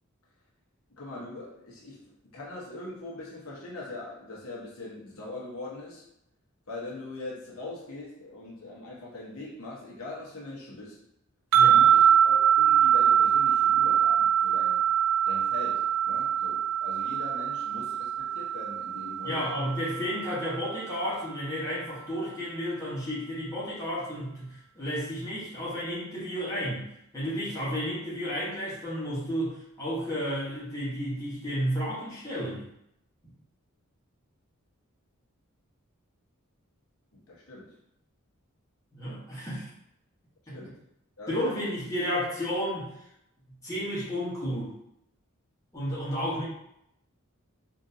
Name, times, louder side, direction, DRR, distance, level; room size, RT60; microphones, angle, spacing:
voice 1, 1.0-6.1 6.7-11.0 11.6-14.8 15.2-19.5 37.1-37.8 40.5-40.8 41.2-41.6, left 2 dB, 80° left, -5 dB, 1.0 m, -42 dB
sound 1, 11.5-20.8, right 9 dB, 70° right, 0.3 m, -23 dB
voice 2, 19.2-32.7 38.9-39.7 40.5-40.6 41.3-42.9 43.5-44.7 45.7-46.4, equal, 15° left, -8 dB, 1.1 m, -32 dB
3.8 x 2.6 x 2.7 m, 0.78 s
head